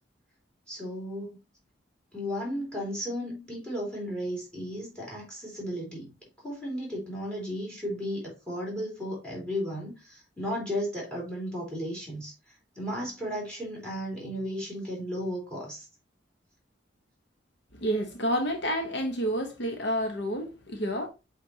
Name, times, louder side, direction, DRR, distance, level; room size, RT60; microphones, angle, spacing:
voice 1, 0.7-1.3 2.1-6.1 6.4-12.3 12.8-15.9, equal, 5° left, 3.5 m, -34 dB
voice 2, 17.8-21.1, equal, 65° left, 1.0 m, -29 dB
8.0 x 4.2 x 2.8 m
head